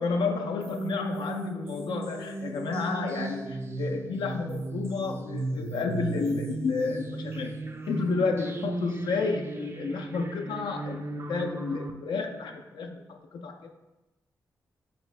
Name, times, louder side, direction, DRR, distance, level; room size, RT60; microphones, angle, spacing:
voice 1, 0.0-13.7, left 4 dB, 80° left, 4 dB, 0.3 m, -31 dB
sound 1, 0.6-11.9, right 3 dB, 35° right, 0.4 m, -36 dB
4.3 x 2.7 x 3.2 m, 1.0 s
cardioid pair, 50°, 8 cm